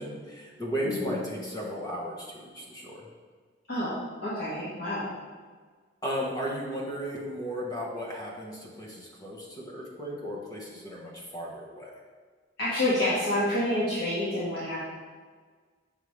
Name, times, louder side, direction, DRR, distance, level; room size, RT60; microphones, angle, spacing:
voice 1, 0.0-3.1 6.0-11.9, equal, 20° left, -3 dB, 1.2 m, -35 dB
voice 2, 4.2-5.1 12.6-14.8, left 1 dB, 55° left, -11 dB, 1.7 m, -28 dB
6.5 x 5.4 x 3.2 m, 1.5 s
head